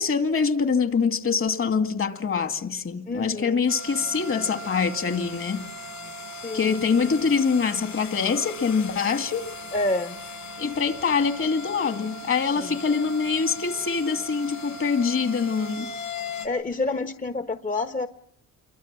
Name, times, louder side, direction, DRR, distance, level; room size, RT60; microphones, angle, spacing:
voice 1, 0.0-5.6 6.5-9.4 10.6-15.9, left 5 dB, 45° left, 2.4 m, -24 dB
voice 2, 3.1-3.7 6.4-6.8 9.7-10.2 12.6-12.8 16.4-18.1, left 2 dB, 25° left, 1.2 m, -28 dB
sound 1, 3.7-16.5, left 2 dB, 70° left, 6.5 m, -38 dB
28.5 x 23.5 x 7.6 m
cardioid pair, 90°, 30 cm